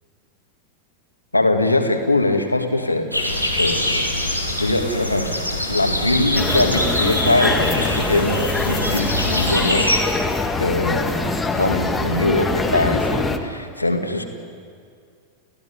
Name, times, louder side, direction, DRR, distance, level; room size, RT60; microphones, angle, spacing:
voice 1, 1.3-4.1 4.6-5.4 5.7-9.9 10.6-14.2, left 2 dB, 85° left, 4 dB, 2.2 m, -22 dB
sound 1, 3.1-10.0, left 1 dB, 90° right, 3.5 m, -23 dB
sound 2, 6.3-13.4, left 3 dB, 10° left, 1.9 m, -24 dB
30.0 x 16.0 x 10.0 m, 2.3 s
figure-of-eight pair, 90°, 0 cm